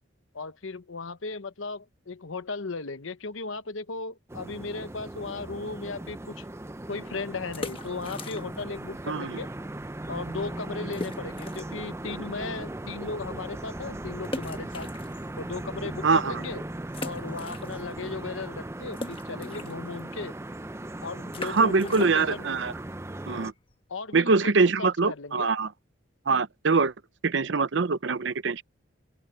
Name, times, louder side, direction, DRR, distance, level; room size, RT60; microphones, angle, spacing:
voice 1, 0.3-6.5 6.9-9.5 10.1-14.9 15.4-16.6 17.0-20.3 21.0-22.5 23.9-25.5, left 4 dB, 80° left, 1.0 m, -36 dB
sound 1, 4.3-23.5, right 1 dB, 15° right, 0.5 m, -38 dB
sound 2, 7.5-8.8 9.0-9.1 9.7-9.8 10.1-10.2 10.9-11.8 12.3-12.4 14.2-15.6 16.1-16.2 16.9-18.1 18.4-23.9, left 2 dB, 25° left, 1.3 m, -41 dB
voice 2, 9.1-9.4 16.0-16.4 21.4-22.7 23.3-23.5 24.1-25.7 26.3-26.9 27.2-28.6, right 4 dB, 65° right, 0.6 m, -24 dB
open air
head